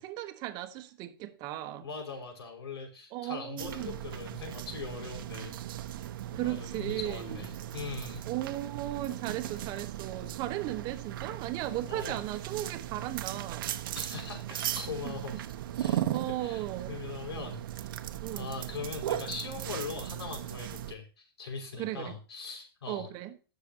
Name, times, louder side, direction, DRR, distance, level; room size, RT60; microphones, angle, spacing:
voice 1, 0.0-1.9 3.1-4.0 6.3-7.5 8.2-13.7 15.0-15.1 16.1-17.0 18.2-18.5 21.8-22.2 22.9-23.3, right 14 dB, 30° right, 1.3 m, -36 dB
voice 2, 1.8-5.6 6.3-8.2 9.6-9.7 11.9-12.2 13.9-15.4 15.7-17.9 18.3-23.1, left 5 dB, 85° left, 5.8 m, -41 dB
sound 1, 3.6-20.9, right 12 dB, 60° right, 1.2 m, -37 dB
19.5 x 7.0 x 2.9 m
hypercardioid pair, 150°, 13 cm